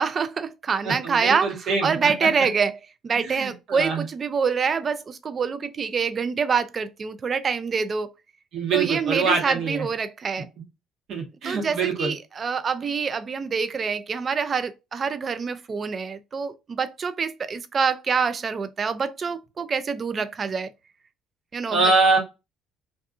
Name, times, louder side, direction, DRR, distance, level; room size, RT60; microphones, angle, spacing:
voice 1, 0.0-8.1 8.7-10.5 11.4-20.7 21.5-21.9, right 5 dB, 40° right, 0.4 m, -26 dB
voice 2, 0.8-2.1 3.1-4.0 8.5-9.9 11.1-12.1 21.7-22.2, right 4 dB, 60° right, 0.9 m, -24 dB
2.6 x 2.3 x 2.3 m
hypercardioid pair, 60°, 0 cm